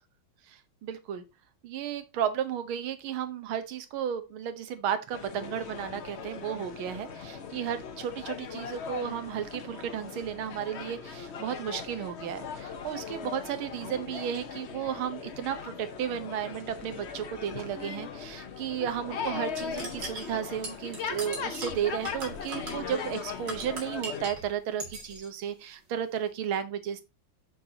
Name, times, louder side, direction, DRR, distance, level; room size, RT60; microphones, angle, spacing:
voice 1, 0.5-1.2 1.6-27.0, right 9 dB, 90° right, 1.8 m, -34 dB
sound 1, 5.1-24.3, left 6 dB, 65° left, 0.6 m, -39 dB
sound 2, 19.6-24.5 24.8-25.3, right 2 dB, 60° right, 2.8 m, -39 dB
6.6 x 6.3 x 2.8 m
omnidirectional pair, 2.2 m